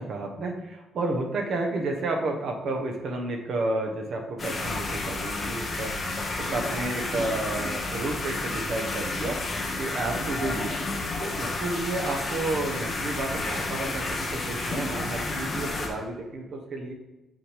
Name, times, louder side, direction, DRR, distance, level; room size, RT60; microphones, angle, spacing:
voice 1, 0.0-5.9 6.4-9.4 9.8-10.7 11.2-16.9, right 2 dB, 60° right, 2 dB, 1.1 m, -31 dB
sound 1, 4.4-15.9, left 2 dB, 35° left, 1.3 m, -31 dB
7.0 x 6.1 x 3.2 m, 1.0 s
cardioid pair, 125°, 0 cm